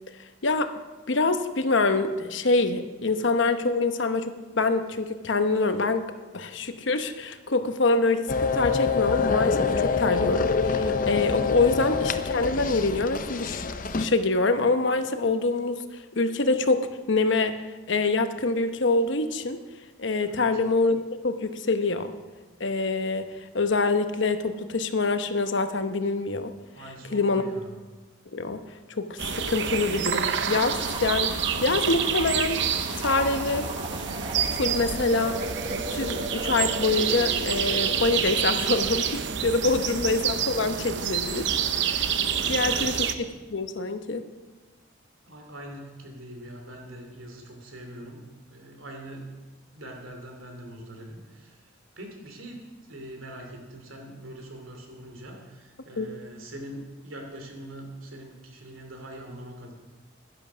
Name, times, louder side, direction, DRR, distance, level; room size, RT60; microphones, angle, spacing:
voice 1, 0.4-0.7 1.1-4.3 4.6-6.1 6.3-13.7 14.0-17.6 17.9-19.6 20.0-22.1 22.6-26.5 27.1-27.5 28.3-28.6 28.9-32.6 33.0-33.7 34.5-35.4 35.7-41.5 41.9-42.1 42.5-43.0 43.5-44.2 56.0-56.1, left 3 dB, 65° left, 9 dB, 0.9 m, -25 dB
sound 1, 8.3-14.1, left 5 dB, 40° left, 0.6 m, -26 dB
voice 2, 20.2-20.6 26.7-27.7 39.6-40.0 42.4-43.1 45.3-49.4 49.7-51.7 52.0-59.7, right 1 dB, 85° right, 3 dB, 2.8 m, -43 dB
sound 2, 29.2-43.1, right 7 dB, 60° right, 0.7 m, -28 dB
sound 3, 30.5-39.1, right 2 dB, 25° right, 1.0 m, -36 dB
11.5 x 11.0 x 6.1 m, 1.3 s
head